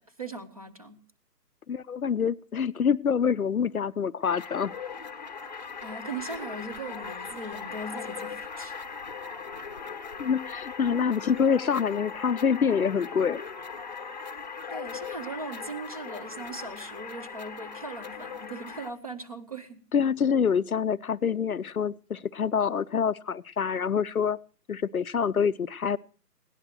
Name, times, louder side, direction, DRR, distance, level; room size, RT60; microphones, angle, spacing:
voice 1, 0.2-1.0 5.8-8.7 14.7-19.8, right 3 dB, 25° right, 11 dB, 0.8 m, -39 dB
voice 2, 1.7-4.8 10.2-13.4 19.9-24.4 24.7-26.0, left 7 dB, 60° left, 15 dB, 0.6 m, -26 dB
sound 1, 4.2-18.9, left 5 dB, 25° left, 0.8 m, -39 dB
20.0 x 17.0 x 3.0 m, 0.40 s
figure-of-eight pair, 150°, 49 cm